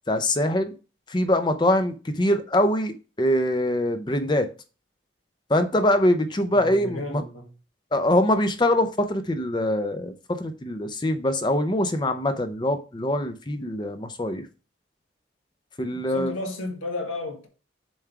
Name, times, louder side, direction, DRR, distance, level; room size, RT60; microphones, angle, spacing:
voice 1, 0.1-0.7 1.1-4.5 5.5-7.2 7.9-14.5 15.8-16.3, left 1 dB, 25° left, 0.6 m, -23 dB
voice 2, 6.5-7.5 15.9-17.5, left 2 dB, 90° left, 1.9 m, -33 dB
7.2 x 3.4 x 4.6 m
head